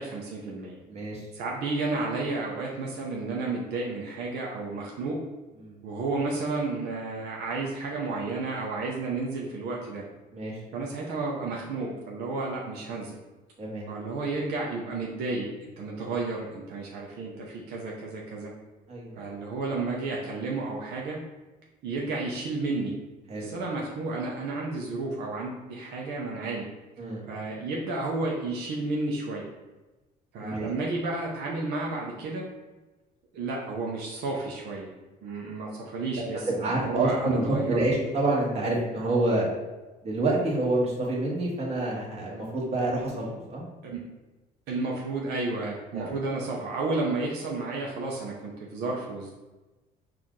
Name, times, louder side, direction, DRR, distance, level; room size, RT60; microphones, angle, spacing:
voice 1, 0.0-0.8 1.3-5.2 5.8-10.0 10.7-13.2 13.9-18.5 19.2-21.2 21.8-22.9 23.4-26.7 27.3-29.5 30.3-32.4 33.3-34.9 35.2-37.8 43.8-44.0 44.7-49.3, right 3 dB, 80° right, -2 dB, 0.7 m, -32 dB
voice 2, 0.9-1.2 5.6-5.8 10.3-10.5 13.6-13.8 18.9-19.2 23.3-23.5 27.0-27.3 30.4-30.7 36.6-39.5 40.0-43.6 45.9-46.1, right 2 dB, 40° right, -4 dB, 1.4 m, -27 dB
4.4 x 2.5 x 3.7 m, 1.1 s
cardioid pair, 110°, 17 cm